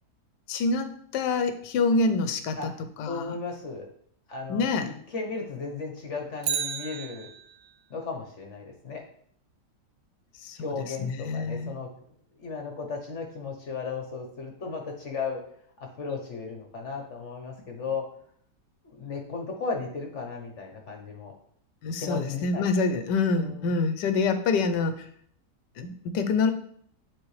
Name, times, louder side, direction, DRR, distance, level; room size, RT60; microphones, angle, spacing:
voice 1, 0.5-2.7 3.0-3.3 4.5-4.9 10.4-11.7 21.8-25.1 25.8-26.5, left 4 dB, 80° left, 9 dB, 1.3 m, -26 dB
voice 2, 3.1-3.9 4.3-7.3 7.9-9.0 10.6-11.9 12.4-15.4 15.8-18.0 18.8-21.3 22.0-22.7 23.4-23.7, left 4 dB, 50° left, 2 dB, 1.1 m, -35 dB
Bicycle, 6.4-7.8 16.1-16.2, right 8 dB, 85° right, 0.6 m, -33 dB
9.7 x 4.1 x 3.2 m, 0.63 s
omnidirectional pair, 1.9 m